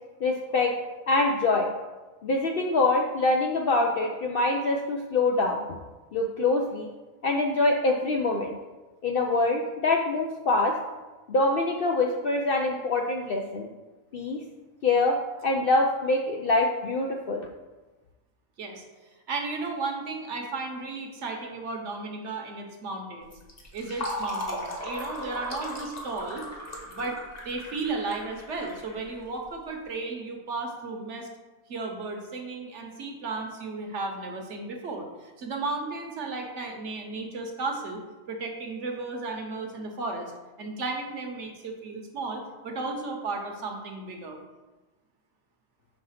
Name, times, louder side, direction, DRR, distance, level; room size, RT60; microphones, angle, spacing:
voice 1, 0.2-0.7 1.1-1.7 2.2-5.7 6.1-6.9 7.2-8.6 9.0-10.8 11.3-13.7 14.1-14.4 14.8-15.2 15.4-17.5, left 2 dB, 60° left, 1 dB, 0.6 m, -24 dB
voice 2, 19.3-23.3 23.7-26.4 26.8-31.3 31.7-38.0 38.3-40.3 40.6-44.4, right 3 dB, 60° right, 3 dB, 1.2 m, -34 dB
Fill (with liquid), 23.2-29.6, left 1 dB, 35° left, 1.1 m, -37 dB
5.5 x 3.8 x 5.7 m, 1.2 s
omnidirectional pair, 1.4 m